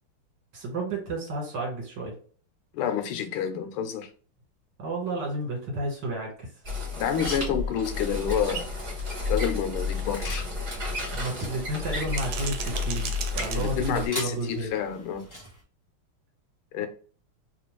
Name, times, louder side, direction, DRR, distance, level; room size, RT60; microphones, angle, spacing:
voice 1, 0.5-2.2 4.8-6.5 11.1-14.7, right 2 dB, 55° right, 1.9 m, -31 dB
voice 2, 2.7-4.1 6.9-8.7 9.3-10.5 13.5-15.3 16.7-16.9, left 8 dB, 85° left, 1.5 m, -29 dB
sound 1, 6.3-6.4 6.9-7.0 7.4-7.5 7.9-8.0 8.4-8.5 8.9-9.1 9.4-9.6 10.1-11.1 11.9-14.1, right 7 dB, 80° right, 1.4 m, -38 dB
sound 2, 6.6-14.1, left 3 dB, 35° right, 0.9 m, -32 dB
sound 3, 7.0-15.6, equal, 15° left, 0.7 m, -44 dB
3.6 x 2.4 x 3.0 m
omnidirectional pair, 2.4 m